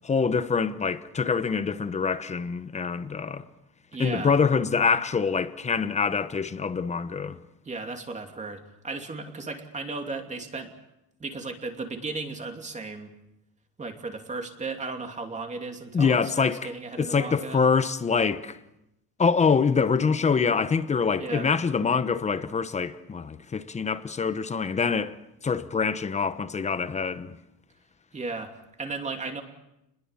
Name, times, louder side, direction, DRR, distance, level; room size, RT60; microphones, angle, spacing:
voice 1, 0.0-3.5 4.0-7.4 15.9-16.6 17.0-18.6 19.2-25.2 25.4-27.4, left 5 dB, 15° left, 0.9 m, -25 dB
voice 2, 3.9-4.3 7.6-10.7 11.2-13.1 13.8-17.6 21.2-21.5 28.1-29.4, right 3 dB, 15° right, 2.8 m, -35 dB
28.5 x 21.5 x 7.2 m
cardioid pair, 145°, 43 cm